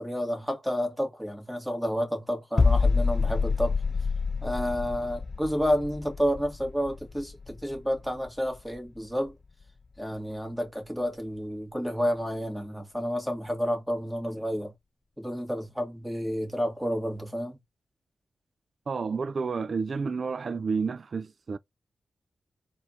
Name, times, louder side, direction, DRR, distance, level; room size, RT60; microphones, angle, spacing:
voice 1, 0.0-3.7 4.4-9.3 10.0-14.7 15.2-17.6, equal, ahead, 2.2 m, -30 dB
sound 1, 2.6-8.3 8.5-8.8, left 4 dB, 40° left, 0.3 m, -27 dB
voice 2, 18.9-21.6, right 5 dB, 55° right, 0.4 m, -30 dB
4.2 x 2.6 x 4.3 m
cardioid pair, 70°, 0 cm